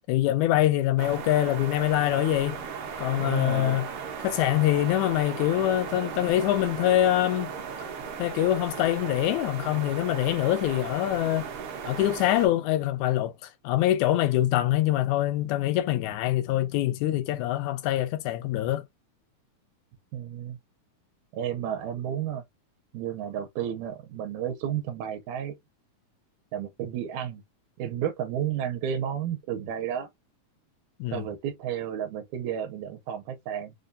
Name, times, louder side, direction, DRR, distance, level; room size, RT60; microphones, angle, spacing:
voice 1, 0.1-2.6 3.0-3.9 4.2-7.5 8.2-11.5 11.9-13.3 13.6-18.8 31.0-31.3, left 13 dB, 80° left, 1.9 m, -24 dB
sound 1, 1.0-12.5, right 6 dB, 70° right, 1.4 m, -36 dB
voice 2, 3.2-3.8 20.1-20.6 21.3-22.4 22.9-25.6 26.5-27.4 27.8-30.1 31.1-33.7, right 9 dB, 85° right, 2.1 m, -32 dB
5.1 x 2.2 x 2.6 m
omnidirectional pair, 3.4 m